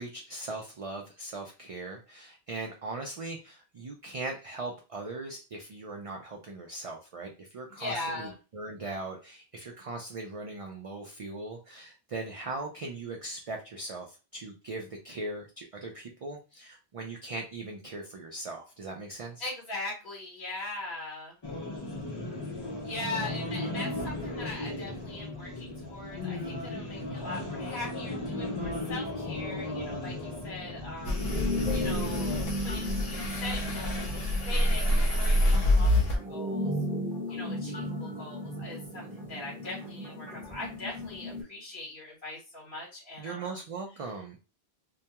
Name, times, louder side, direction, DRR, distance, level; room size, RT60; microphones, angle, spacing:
voice 1, 0.0-19.5 43.2-44.4, right 2 dB, 60° right, 1 dB, 0.3 m, -39 dB
voice 2, 7.7-8.3 19.4-21.4 22.8-31.3 31.7-36.7 37.3-43.5, left 2 dB, 55° left, -4 dB, 1.1 m, -40 dB
sound 1, 21.4-32.4, left 2 dB, 35° left, 0.4 m, -36 dB
sound 2, 31.0-36.2, left 1 dB, 70° left, 0.9 m, -27 dB
sound 3, 31.1-41.4, left 1 dB, 10° right, 0.9 m, -35 dB
2.2 x 2.2 x 2.8 m, 0.31 s
omnidirectional pair, 1.1 m